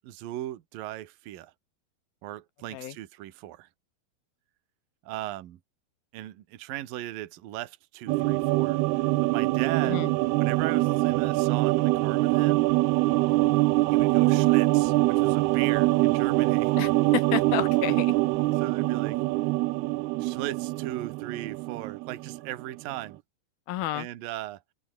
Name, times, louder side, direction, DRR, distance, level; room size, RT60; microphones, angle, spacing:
voice 1, 0.0-1.5 2.2-3.7 5.0-5.6 6.1-10.0 10.4-12.7 13.9-16.7 18.5-19.2 20.2-23.2 23.9-24.6, right 14 dB, 60° right, 2.9 m, -37 dB
sound 1, 8.1-22.6 22.9-23.0, right 20 dB, 80° right, 2.4 m, -24 dB
voice 2, 16.8-18.1 23.7-24.1, left 13 dB, 70° left, 2.5 m, -31 dB
omnidirectional pair, 5.0 m